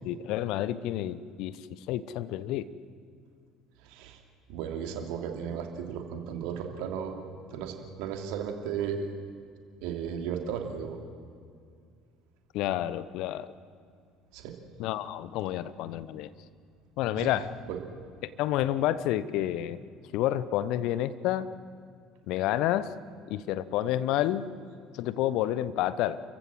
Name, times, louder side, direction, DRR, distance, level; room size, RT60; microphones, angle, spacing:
voice 1, 0.1-1.6 1.9-2.7 12.5-13.5 14.8-16.3 17.0-17.5 18.4-19.8 20.1-21.5 22.3-22.9 23.3-24.5 25.0-26.2, left 13 dB, 60° left, 16 dB, 0.8 m, -29 dB
voice 2, 3.8-4.2 4.5-7.2 7.5-9.1 9.8-11.0 14.3-14.6 17.1-17.3 17.7-17.8, right 7 dB, 60° right, 4 dB, 2.7 m, -35 dB
29.5 x 15.0 x 7.6 m, 2.3 s
figure-of-eight pair, 60°, 0 cm